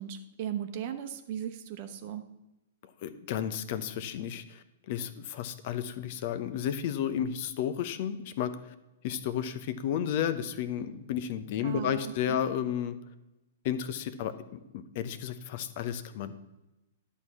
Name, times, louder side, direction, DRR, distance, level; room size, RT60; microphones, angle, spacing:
voice 1, 0.0-2.2 11.6-12.4, right 9 dB, 45° right, 8 dB, 1.0 m, -37 dB
voice 2, 3.0-8.6 9.0-13.0 13.6-16.3, left 9 dB, 45° left, 12 dB, 0.7 m, -32 dB
11.0 x 4.6 x 7.1 m, 0.98 s
figure-of-eight pair, 110°, 0 cm